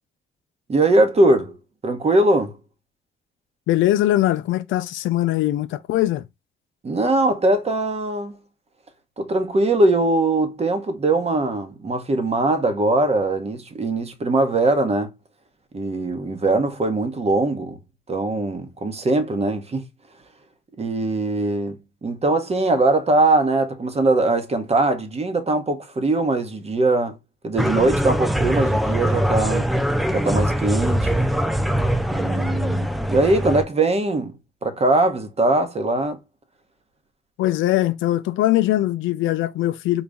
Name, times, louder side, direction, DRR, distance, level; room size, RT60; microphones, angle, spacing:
voice 1, 0.7-1.6 1.8-2.5 6.8-8.3 9.2-15.1 15.7-17.8 18.1-19.9 20.8-21.8 22.0-27.2 27.4-29.6 30.1-31.3 32.1-34.3 34.6-36.2, right 2 dB, 30° right, 0.9 m, -21 dB
voice 2, 3.7-6.3 37.4-40.0, left 14 dB, 80° left, 0.4 m, -21 dB
sound 1, 27.6-33.6, equal, ahead, 0.4 m, -22 dB
4.0 x 2.3 x 3.4 m
cardioid pair, 90°, 20 cm